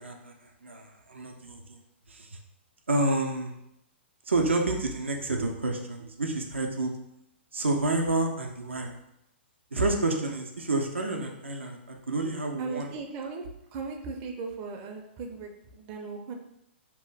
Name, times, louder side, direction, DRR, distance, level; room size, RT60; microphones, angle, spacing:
voice 1, 0.4-1.8 2.1-2.3 2.9-3.5 4.3-6.9 7.5-9.0 9.7-12.9, right 2 dB, 90° right, 2 dB, 0.5 m, -29 dB
voice 2, 12.6-16.3, right 4 dB, 35° right, 2 dB, 0.4 m, -38 dB
2.9 x 2.2 x 3.2 m, 0.79 s
hypercardioid pair, 115°, 6 cm